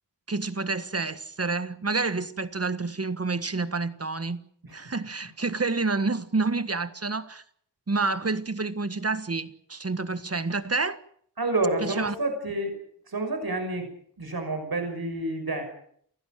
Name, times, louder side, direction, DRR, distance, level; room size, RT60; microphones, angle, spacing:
voice 1, 0.3-4.4 4.7-7.4 7.9-11.0 11.8-12.1, right 3 dB, 35° right, 1.6 m, -28 dB
voice 2, 11.4-12.8 13.1-13.9 14.2-15.6, right 2 dB, 60° right, 6.1 m, -29 dB
29.5 x 16.0 x 7.6 m
wide cardioid pair, 70°, 41 cm